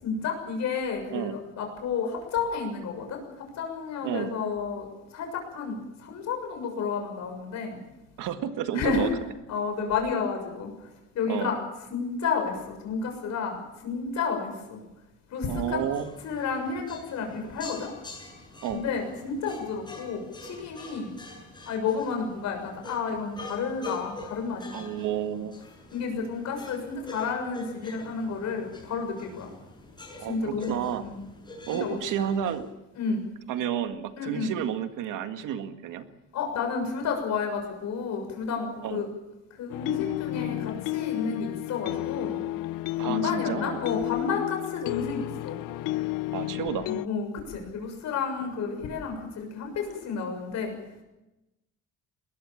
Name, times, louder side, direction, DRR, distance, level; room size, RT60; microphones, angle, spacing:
voice 1, 0.0-4.9 5.1-7.8 8.7-9.2 9.5-10.7 11.1-11.6 11.9-14.8 15.3-15.8 16.2-17.9 18.7-21.1 21.6-25.1 25.9-29.5 30.2-31.2 31.7-32.0 33.0-33.2 34.2-34.5 36.3-39.1 39.6-42.4 43.0-45.6 46.8-50.7, left 5 dB, 60° left, 3 dB, 6.8 m, -31 dB
voice 2, 4.0-4.3 8.2-9.1 11.3-11.5 15.5-16.1 18.6-18.8 24.7-25.6 30.2-31.0 31.7-32.7 33.5-36.1 38.8-39.0 43.0-43.8 46.3-46.9, right 9 dB, 75° right, 8 dB, 1.9 m, -31 dB
sound 1, 15.5-32.7, left 2 dB, 15° left, 7.6 m, -45 dB
sound 2, 39.7-47.1, left 17 dB, 85° left, 0.7 m, -32 dB
22.5 x 19.5 x 7.3 m, 0.97 s
cardioid pair, 160°, 32 cm